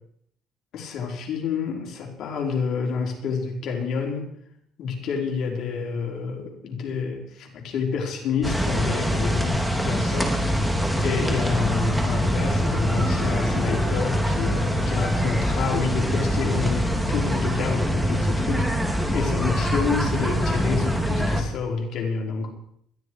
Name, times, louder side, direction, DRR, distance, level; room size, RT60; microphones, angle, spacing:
voice 1, 0.7-4.3 4.8-10.3 11.0-22.5, left 5 dB, 65° left, 1 dB, 4.6 m, -28 dB
sound 1, 8.4-21.4, equal, ahead, 3.0 m, -24 dB
21.0 x 13.5 x 4.8 m, 0.68 s
cardioid pair, 110°, 0 cm